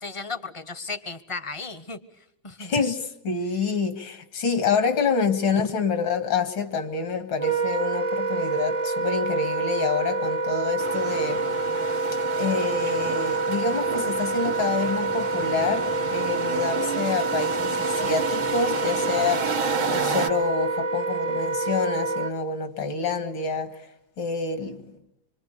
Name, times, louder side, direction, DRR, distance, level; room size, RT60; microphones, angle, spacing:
voice 1, 0.0-2.0 2.4-3.0 5.5-5.7, left 3 dB, 25° left, 13 dB, 0.8 m, -34 dB
voice 2, 2.6-11.4 12.4-19.5 19.9-23.8 24.2-24.8, left 5 dB, 80° left, 9 dB, 2.7 m, -27 dB
Wind instrument woodwind instrument, 7.3-22.3, right 2 dB, 30° right, 0.7 m, -27 dB
sound 1, 10.8-20.3, right 7 dB, 80° right, 2.3 m, -32 dB
26.0 x 24.5 x 8.4 m, 0.83 s
omnidirectional pair, 2.2 m